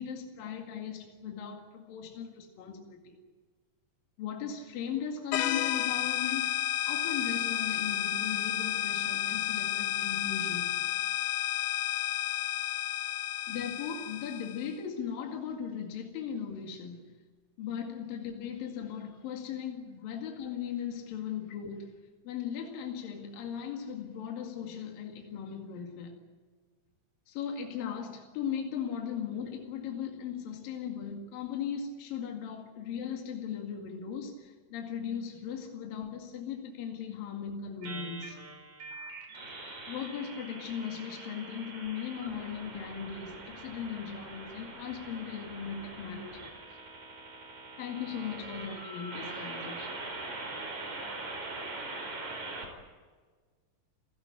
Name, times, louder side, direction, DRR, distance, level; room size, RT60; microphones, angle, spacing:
voice 1, 0.0-3.2 4.2-6.5 6.8-10.8 13.5-17.1 17.6-21.9 22.2-26.2 27.3-38.4 39.9-46.4 47.8-50.0, left 8 dB, 70° left, 2 dB, 3.8 m, -38 dB
sound 1, 5.3-14.7, left 13 dB, 85° left, 3.0 m, -31 dB
sound 2, 37.8-52.7, right 2 dB, 55° right, 5.8 m, -43 dB
29.0 x 17.0 x 8.5 m, 1.5 s
omnidirectional pair, 4.2 m